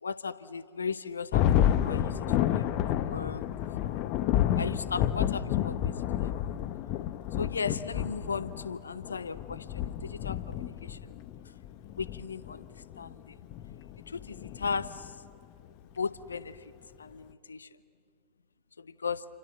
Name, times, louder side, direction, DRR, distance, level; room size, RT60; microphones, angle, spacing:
voice 1, 0.0-2.7 2.9-3.5 3.8-4.1 4.6-6.0 6.3-6.4 7.4-11.2 12.0-12.7 13.0-13.4 14.1-15.2 15.9-16.7 17.0-17.7 18.8-19.3, left 5 dB, 75° left, 16 dB, 0.8 m, -37 dB
Thunder, 1.3-15.3, left 11 dB, 45° left, 1.1 m, -30 dB
29.0 x 25.5 x 7.7 m, 2.3 s
figure-of-eight pair, 90°, 0 cm